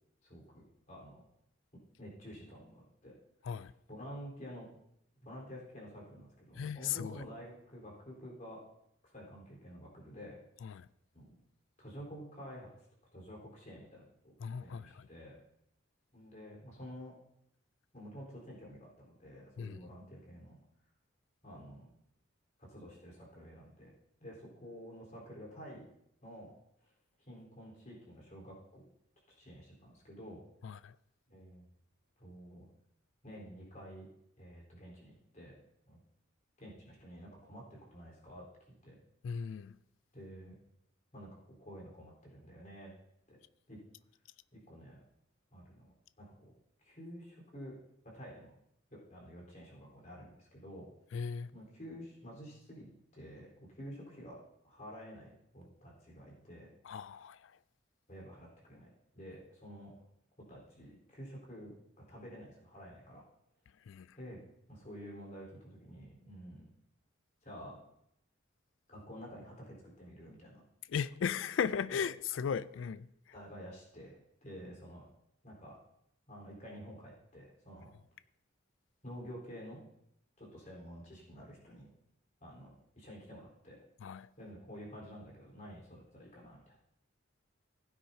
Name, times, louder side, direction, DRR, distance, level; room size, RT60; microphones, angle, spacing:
voice 1, 0.2-1.2 2.0-3.2 3.5-4.7 5.2-8.6 9.1-10.4 11.1-11.4 11.8-12.7 13.1-14.3 14.6-15.3 16.1-17.1 17.9-20.6 21.4-21.9 22.6-23.9 24.2-25.8 26.2-26.5 26.8-26.9 27.2-28.8 29.3-30.4 31.3-31.6 32.2-32.7 33.2-34.1 34.4-35.5 35.9-36.0 36.6-38.4 38.8-39.0 40.1-40.6 41.1-42.9 43.3-43.4 43.7-43.8 44.5-45.0 45.5-46.5 46.8-47.8 48.0-48.5 48.9-50.9 51.5-54.4 54.6-56.7 58.1-58.9 59.1-59.9 60.4-61.7 62.1-63.2 64.2-66.7 67.4-67.8 68.9-70.6 71.9-72.0 73.3-74.1 74.4-75.1 75.4-75.8 76.3-77.9 79.0-79.8 80.4-81.9 82.4-83.8 84.4-86.8, equal, 40° left, 4.2 m, -50 dB
voice 2, 6.6-7.2 10.6-10.9 14.4-15.1 19.6-19.8 30.6-31.0 39.2-39.8 51.1-51.5 56.8-57.5 63.9-64.2 70.9-73.1 84.0-84.3, left 7 dB, 65° left, 0.3 m, -37 dB
16.0 x 9.3 x 2.8 m
head